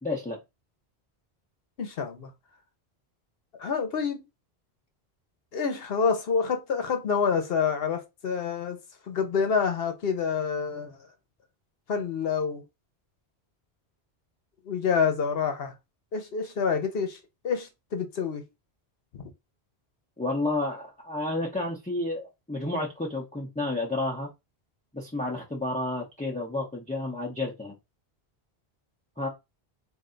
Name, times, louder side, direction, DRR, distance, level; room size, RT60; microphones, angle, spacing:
voice 1, 0.0-0.4 20.2-24.3 24.9-27.8 29.2-29.3, left 2 dB, 10° left, 0.6 m, -31 dB
voice 2, 1.8-2.3 3.6-4.2 5.5-8.8 9.1-11.0 11.9-12.6 14.7-15.7 16.1-17.2 17.4-18.4 19.1-19.3, left 6 dB, 65° left, 1.0 m, -27 dB
3.2 x 2.6 x 3.8 m
omnidirectional pair, 1.1 m